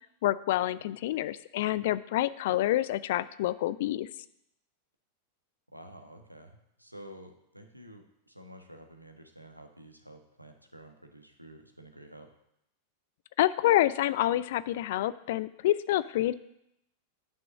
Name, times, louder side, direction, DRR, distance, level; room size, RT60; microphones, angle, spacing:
voice 1, 0.2-4.1 13.4-16.3, left 14 dB, 55° left, 17 dB, 0.4 m, -27 dB
voice 2, 5.7-12.3, right 1 dB, 90° right, 5 dB, 1.1 m, -50 dB
9.8 x 6.1 x 6.5 m, 0.80 s
figure-of-eight pair, 90°, 0 cm